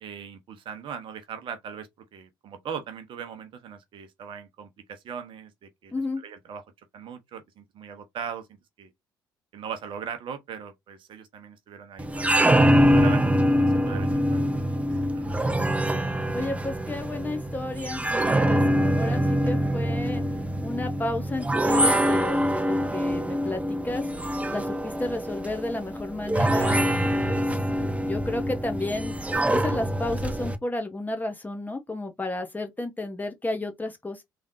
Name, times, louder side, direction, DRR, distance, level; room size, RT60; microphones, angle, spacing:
voice 1, 0.0-6.6 6.9-8.9 9.5-12.4 12.9-15.2, right 7 dB, 50° right, 0.9 m, -39 dB
voice 2, 5.9-6.2 16.3-18.6 18.9-20.2 20.6-24.1 24.5-27.5 27.8-29.1 29.5-34.2, left 2 dB, 15° left, 1.3 m, -32 dB
sound 1, 12.0-30.6, equal, 10° right, 0.8 m, -24 dB
3.6 x 3.3 x 2.7 m
figure-of-eight pair, 50°, 11 cm